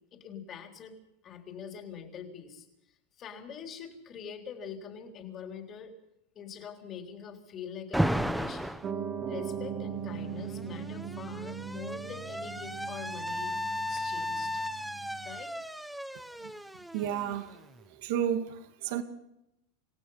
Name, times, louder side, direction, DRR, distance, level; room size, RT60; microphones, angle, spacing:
voice 1, 0.1-1.0 1.2-2.7 3.2-5.9 6.4-8.7 9.3-13.6 13.9-14.6 15.2-15.6, left 7 dB, 30° left, 3.8 m, -44 dB
Alarm, 7.9-8.9 10.1-17.8, equal, ahead, 0.9 m, -35 dB
Piano, 8.8-15.4, right 7 dB, 30° right, 2.7 m, -39 dB
voice 2, 16.9-17.6 18.0-19.0, right 9 dB, 60° right, 2.3 m, -31 dB
28.0 x 16.5 x 5.7 m
supercardioid pair, 145°, 0 cm